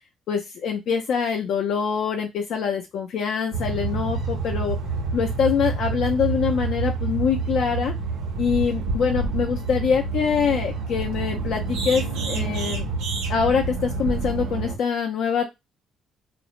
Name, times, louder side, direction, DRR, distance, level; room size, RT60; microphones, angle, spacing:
voice 1, 0.3-4.8 5.1-7.9 8.4-12.9 13.3-15.4, left 6 dB, 55° left, 2 dB, 0.4 m, -24 dB
sound 1, 3.5-14.8, right 4 dB, 80° right, 0.8 m, -28 dB
2.4 x 2.0 x 3.0 m, 0.20 s
cardioid pair, 150°, 0 cm